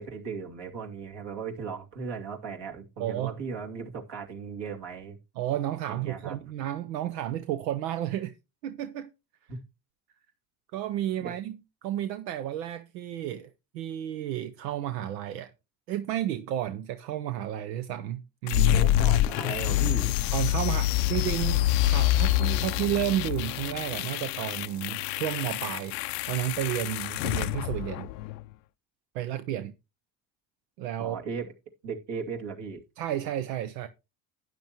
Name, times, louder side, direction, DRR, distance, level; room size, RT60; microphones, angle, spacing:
voice 1, 0.0-5.2 5.9-6.4 9.5-9.6 11.2-11.3 18.7-20.1 31.0-31.5 31.8-32.8, right 5 dB, 60° right, 2.6 m, -37 dB
voice 2, 3.0-3.3 5.4-8.3 8.6-9.1 10.7-15.5 15.9-18.8 20.3-28.1 29.1-29.7 30.8-31.2 33.0-33.9, right 12 dB, 90° right, 0.7 m, -32 dB
sound 1, 18.5-28.4, left 14 dB, 85° left, 0.6 m, -26 dB
12.0 x 9.2 x 3.0 m
hypercardioid pair, 65°, 48 cm